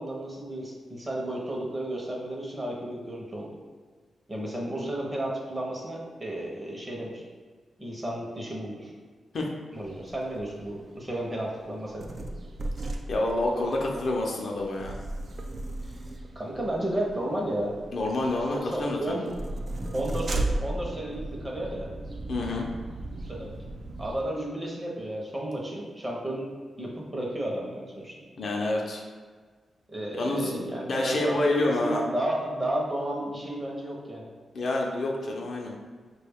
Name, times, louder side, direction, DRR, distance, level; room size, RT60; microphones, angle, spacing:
voice 1, 0.0-3.5 4.3-7.2 7.8-8.9 9.7-12.3 15.8-15.9 16.4-17.8 18.5-19.4 19.9-21.9 23.2-23.5 24.0-26.5 26.8-28.1 29.9-34.3, right 1 dB, 20° right, -2 dB, 0.7 m, -33 dB
sound 1, 9.7-24.2, right 2 dB, 45° right, 0.3 m, -36 dB
voice 2, 13.1-14.9 17.9-19.1 22.3-22.7 28.4-29.0 30.1-30.5 30.9-32.0 34.5-35.7, left 2 dB, 55° left, -1 dB, 0.6 m, -28 dB
4.6 x 2.3 x 3.5 m, 1.5 s
wide cardioid pair, 140°, 0 cm